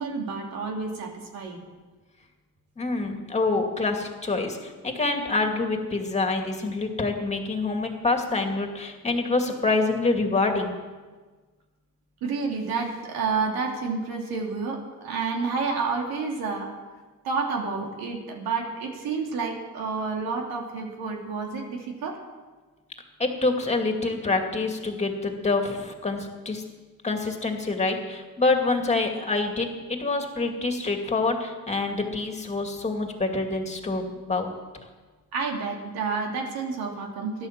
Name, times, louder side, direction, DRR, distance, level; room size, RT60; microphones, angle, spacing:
voice 1, 0.0-1.6 12.2-16.7 17.2-22.2 35.3-37.5, right 4 dB, 80° right, 0 dB, 3.1 m, -29 dB
voice 2, 2.8-10.7 23.2-26.6 27.0-34.5, left 3 dB, 20° left, 3 dB, 2.4 m, -26 dB
16.0 x 11.5 x 7.5 m, 1.3 s
cardioid pair, 130°, 36 cm